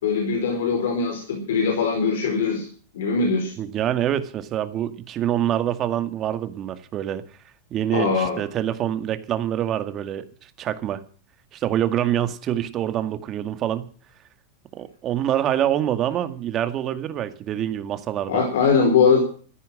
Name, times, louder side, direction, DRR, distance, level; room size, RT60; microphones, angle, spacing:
voice 1, 0.0-2.7 2.9-3.5 7.9-8.4 18.3-19.2, left 5 dB, 80° left, 2 dB, 4.6 m, -21 dB
voice 2, 3.6-7.2 7.7-10.3 10.6-11.0 11.5-13.9 14.7-18.4, right 11 dB, 40° right, 11 dB, 2.0 m, -25 dB
14.0 x 10.5 x 7.7 m, 0.43 s
hypercardioid pair, 110°, 0 cm